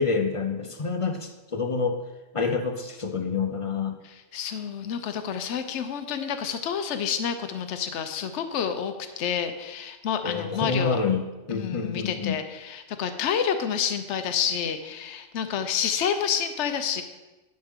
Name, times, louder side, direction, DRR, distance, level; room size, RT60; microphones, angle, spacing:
voice 1, 0.0-2.0 2.3-3.9 10.2-11.2 11.5-12.3, left 5 dB, 40° left, 5 dB, 0.5 m, -27 dB
voice 2, 4.0-11.0 11.5-17.0, left 8 dB, 80° left, 8 dB, 1.0 m, -29 dB
11.5 x 6.5 x 3.6 m, 1.1 s
omnidirectional pair, 1.2 m